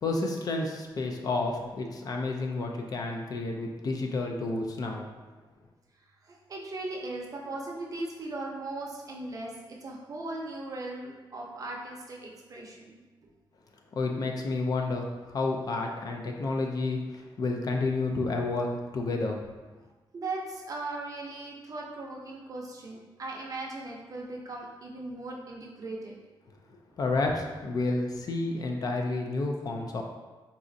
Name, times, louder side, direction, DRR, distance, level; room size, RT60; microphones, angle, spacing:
voice 1, 0.0-5.1 13.9-19.4 27.0-30.0, left 3 dB, 45° left, 2 dB, 0.3 m, -30 dB
voice 2, 6.3-13.3 20.1-26.1, right 2 dB, 40° right, -2 dB, 0.5 m, -38 dB
4.0 x 2.4 x 2.5 m, 1.2 s
wide cardioid pair, 170°, 9 cm